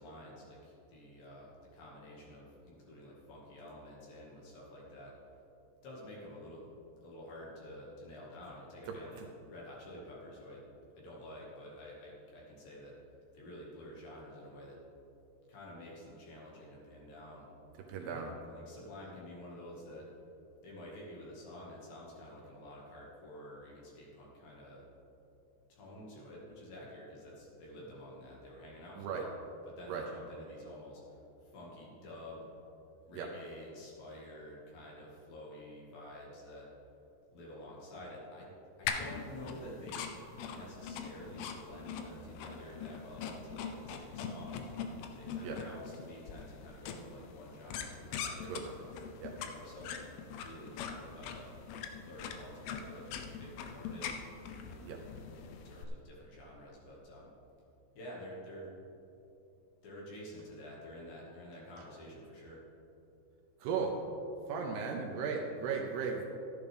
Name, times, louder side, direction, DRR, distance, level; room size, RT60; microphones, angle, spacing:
voice 1, 0.0-5.1 5.8-6.7 7.0-10.6 11.0-13.0 13.3-14.8 15.5-17.5 18.0-20.1 20.6-24.8 25.7-29.3 29.7-32.5 33.0-36.7 37.3-38.5 38.8-40.0 40.5-44.7 45.2-48.5 49.4-51.6 52.0-54.1 55.5-57.3 57.9-58.7 59.8-62.6, left 1 dB, 55° left, -4 dB, 3.2 m, -49 dB
voice 2, 8.9-9.3 17.9-18.3 29.0-29.3 29.9-30.1 33.1-33.3 45.4-45.6 48.5-48.7 49.2-49.3 54.8-55.0 63.6-64.0 64.5-66.2, right 5 dB, 80° right, 1 dB, 2.5 m, -36 dB
sound 1, 38.8-55.8, left 6 dB, 85° left, 2.3 m, -43 dB
13.0 x 11.0 x 3.5 m, 2.8 s
omnidirectional pair, 5.4 m